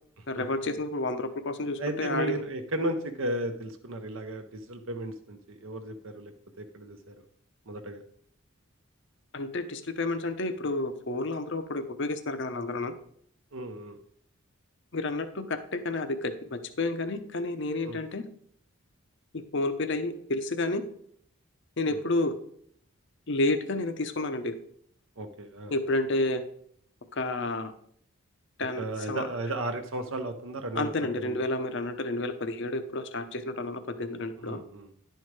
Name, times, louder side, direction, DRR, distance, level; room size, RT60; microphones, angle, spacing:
voice 1, 0.3-2.3 9.3-12.9 14.9-18.3 19.3-20.8 21.8-22.3 23.3-24.6 25.7-26.4 27.1-27.7 28.6-29.3 30.7-34.6, left 2 dB, 55° left, 9 dB, 0.7 m, -30 dB
voice 2, 1.8-6.3 6.6-7.1 7.7-8.0 13.5-14.0 17.9-18.0 21.9-22.0 25.2-25.7 28.8-30.9 31.2-31.4 34.4-34.9, right 1 dB, 65° right, 5 dB, 0.8 m, -34 dB
10.5 x 4.6 x 4.7 m, 0.64 s
head